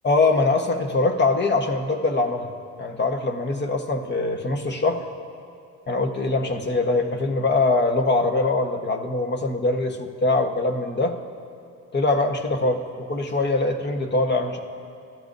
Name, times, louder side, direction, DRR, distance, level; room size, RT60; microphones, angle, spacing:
voice 1, 0.0-2.5 2.8-5.0 5.9-11.2 11.9-12.8 13.1-14.6, left 3 dB, 35° left, 5 dB, 1.3 m, -23 dB
24.5 x 14.0 x 2.7 m, 2.4 s
cardioid pair, 90°, 30 cm